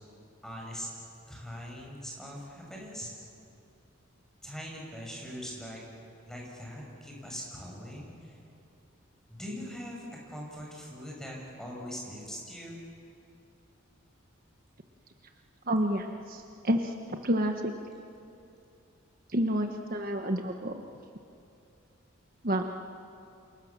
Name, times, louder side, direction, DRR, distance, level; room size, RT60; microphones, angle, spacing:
voice 1, 0.4-0.9 1.3-3.1 4.4-5.8 6.3-8.3 9.3-12.8, equal, ahead, -2 dB, 6.6 m, -41 dB
voice 2, 15.7-17.7 19.3-20.8 22.4-22.6, equal, 45° right, 4 dB, 1.2 m, -29 dB
28.5 x 28.5 x 7.4 m, 2.7 s
head